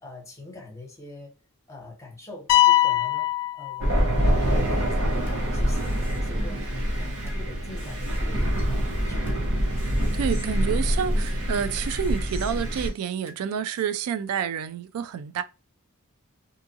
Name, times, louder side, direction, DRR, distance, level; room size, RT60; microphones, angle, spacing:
voice 1, 0.0-1.3 1.7-3.3 3.5-9.5, left 2 dB, 15° left, 0.9 m, -43 dB
sound 1, 2.5-4.4, left 15 dB, 90° left, 0.4 m, -22 dB
Thunder, 3.8-12.9, equal, 70° right, 0.9 m, -25 dB
sound 2, 5.3-5.4 5.8-7.4 7.8-9.4 9.8-11.4 11.8-13.4 13.8-13.9, equal, 10° right, 0.9 m, -46 dB
voice 2, 9.8-15.4, right 8 dB, 85° right, 0.3 m, -29 dB
2.7 x 2.4 x 2.6 m
head